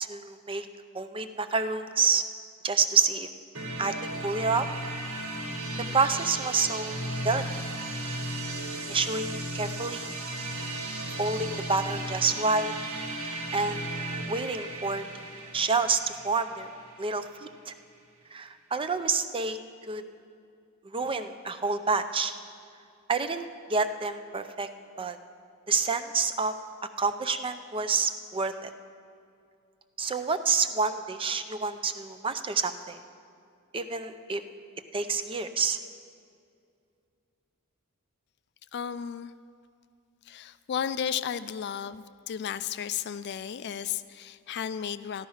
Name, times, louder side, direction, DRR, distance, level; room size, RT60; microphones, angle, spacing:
voice 1, 0.1-0.7 0.9-2.2 2.6-3.3 3.8-3.9 4.2-4.7 5.9-7.5 8.9-10.2 11.2-12.7 13.5-13.9 14.3-15.0 15.5-16.7 17.0-17.7 18.3-19.6 19.9-20.0 20.8-22.3 23.1-24.7 25.0-25.2 25.7-26.5 27.0-28.7 30.0-33.0 33.7-34.4 34.9-35.8, right 4 dB, 25° right, 10 dB, 0.5 m, -28 dB
sound 1, 3.5-17.3, right 1 dB, 75° right, 1.7 m, -35 dB
voice 2, 38.7-39.3 40.2-45.3, left 8 dB, 50° left, 14 dB, 0.4 m, -34 dB
13.5 x 12.0 x 5.6 m, 2.4 s
head